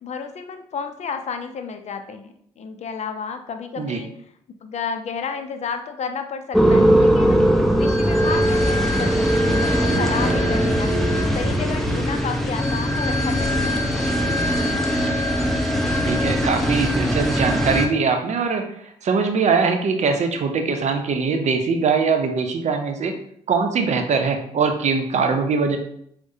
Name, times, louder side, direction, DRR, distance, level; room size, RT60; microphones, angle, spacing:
voice 1, 0.0-4.1 4.6-7.4 7.8-10.9 11.3-14.2, left 6 dB, 50° left, 7 dB, 0.4 m, -32 dB
sound 1, 6.5-17.9, equal, ahead, 0.7 m, -20 dB
voice 2, 16.0-23.2 23.5-25.8, right 5 dB, 55° right, 6 dB, 0.6 m, -22 dB
4.6 x 2.1 x 2.7 m, 0.69 s
hypercardioid pair, 45°, 14 cm